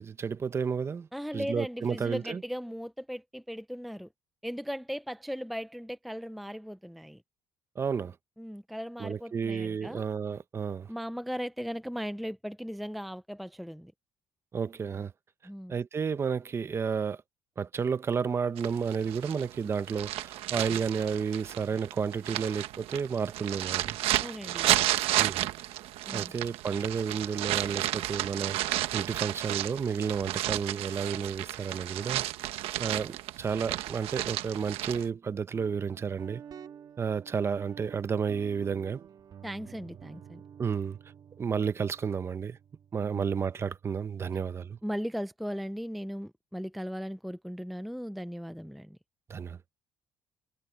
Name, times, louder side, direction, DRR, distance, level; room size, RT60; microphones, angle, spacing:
voice 1, 0.0-1.1 1.3-2.4 7.8-8.2 9.0-10.9 14.5-15.1 15.7-17.2 17.6-24.0 25.2-25.5 26.1-32.2 32.8-36.4 37.0-39.0 40.6-41.0 41.4-42.6 42.9-44.8 49.3-49.6, right 6 dB, 25° right, 0.7 m, -31 dB
voice 2, 1.1-4.1 4.4-7.2 8.4-10.0 10.9-13.9 15.4-15.8 24.2-24.9 26.1-26.3 39.4-40.4 43.1-43.2 44.8-49.0, equal, ahead, 0.4 m, -37 dB
sound 1, 18.6-35.1, right 15 dB, 85° right, 1.1 m, -32 dB
Guitar, 35.5-45.0, right 8 dB, 45° right, 1.7 m, -51 dB
cardioid pair, 145°, 10 cm